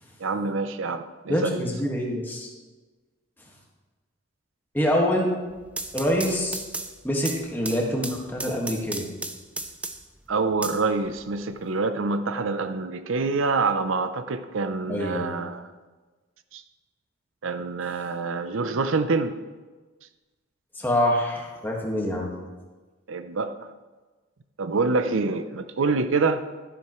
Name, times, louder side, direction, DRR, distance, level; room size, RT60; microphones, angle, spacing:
voice 1, 0.2-1.6 10.3-15.6 16.5-16.6 17.4-19.4 23.1-23.7 24.6-26.4, right 4 dB, 80° right, 10 dB, 0.6 m, -26 dB
voice 2, 1.3-2.5 4.7-5.3 5.9-6.6 7.0-9.1 14.9-15.3 20.8-22.3, equal, 10° left, -2 dB, 1.7 m, -25 dB
sound 1, 5.5-10.2 10.6-11.6, right 2 dB, 5° right, 0.4 m, -35 dB
12.5 x 11.5 x 3.1 m, 1.3 s
head